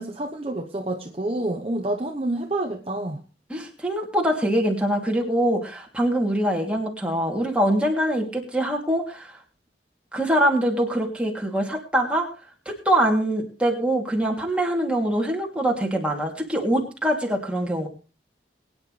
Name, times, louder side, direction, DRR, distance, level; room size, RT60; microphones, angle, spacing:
voice 1, 0.0-3.2, right 1 dB, 30° right, 2 dB, 1.0 m, -28 dB
voice 2, 3.5-9.4 10.1-12.3 12.8-17.9, right 1 dB, 5° right, 0 dB, 2.8 m, -23 dB
22.5 x 9.8 x 3.3 m, 0.33 s
head